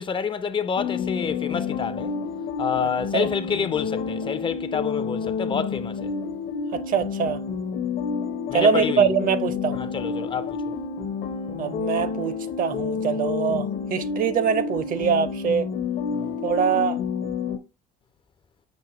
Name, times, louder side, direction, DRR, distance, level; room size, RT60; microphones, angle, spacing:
voice 1, 0.0-2.1 2.6-6.1 8.5-9.1 9.8-10.6 16.1-16.3, left 6 dB, 30° left, 0.4 m, -28 dB
sound 1, 0.8-17.6, left 6 dB, 70° left, 0.8 m, -29 dB
voice 2, 6.7-7.4 8.5-9.8 11.6-15.7 16.4-17.0, right 7 dB, 55° right, 0.6 m, -23 dB
6.2 x 3.0 x 2.9 m
cardioid pair, 110°, 17 cm